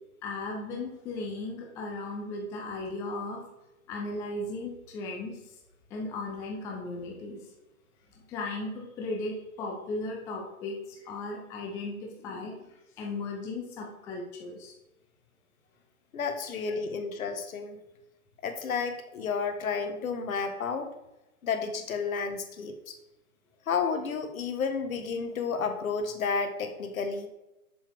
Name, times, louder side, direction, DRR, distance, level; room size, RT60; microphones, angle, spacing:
voice 1, 0.2-3.4 3.9-5.4 5.9-7.5 8.3-14.7 16.7-16.8, left 2 dB, 5° left, 0 dB, 0.4 m, -36 dB
voice 2, 16.1-17.8 18.4-20.9 21.4-22.9 23.7-27.3, left 5 dB, 70° left, 7 dB, 1.4 m, -31 dB
7.1 x 7.0 x 3.5 m, 0.95 s
hypercardioid pair, 130°, 43 cm